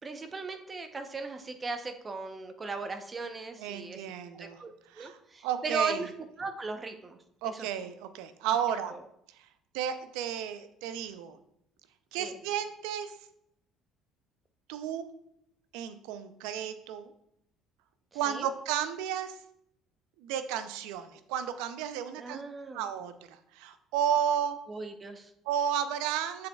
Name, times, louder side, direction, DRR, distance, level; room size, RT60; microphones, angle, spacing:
voice 1, 0.0-4.1 4.4-4.7 5.0-6.1 6.4-7.2 7.4-7.7 8.9-9.0 12.2-12.4 18.3-18.5 22.2-22.8 24.7-25.3, right 4 dB, 30° right, 7 dB, 0.8 m, -37 dB
voice 2, 3.6-4.6 4.9-5.2 5.4-6.0 7.4-8.9 9.7-11.4 12.1-13.1 14.7-15.0 15.7-17.1 18.1-19.3 20.2-22.4 22.7-24.6 25.5-26.5, right 9 dB, 80° right, 11 dB, 0.5 m, -32 dB
7.6 x 7.0 x 2.4 m, 0.77 s
hypercardioid pair, 70°, 0 cm